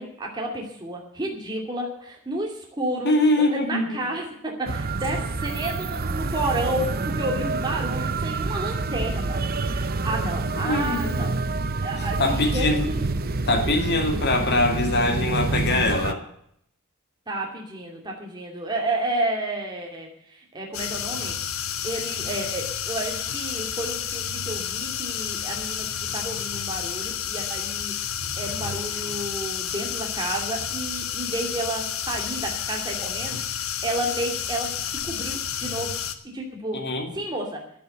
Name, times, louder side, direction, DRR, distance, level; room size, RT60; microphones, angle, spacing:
voice 1, 0.0-9.4 9.7-11.3 11.8-13.0 17.3-21.4 21.8-28.1 28.4-35.9 36.3-36.8 37.1-37.6, right 1 dB, 20° right, -1 dB, 2.5 m, -31 dB
voice 2, 3.0-4.0 10.6-11.3 12.2-12.9 13.5-16.2 36.7-37.1, left 2 dB, 50° left, 5 dB, 2.2 m, -23 dB
sound 1, 4.7-16.1, right 3 dB, 45° right, 0.7 m, -27 dB
sound 2, 20.7-36.1, left 8 dB, 65° left, 1.2 m, -30 dB
11.0 x 10.0 x 8.2 m, 0.69 s
head